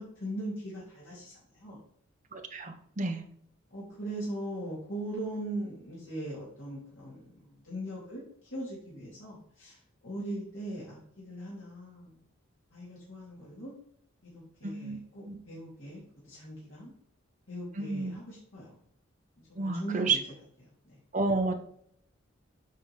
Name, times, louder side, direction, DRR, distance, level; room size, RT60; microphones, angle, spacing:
voice 1, 0.0-1.8 3.7-8.2 8.5-9.8 10.0-12.2 12.7-13.7 14.2-14.3 14.6-16.9 17.5-18.7 19.5-20.2 20.9-21.0, right 1 dB, 75° left, -7 dB, 3.0 m, -40 dB
voice 2, 2.3-3.2 14.6-15.0 15.3-15.4 17.8-18.2 19.6-20.2 21.1-21.5, right 3 dB, 40° right, 5 dB, 1.0 m, -30 dB
8.4 x 5.3 x 3.4 m, 0.68 s
head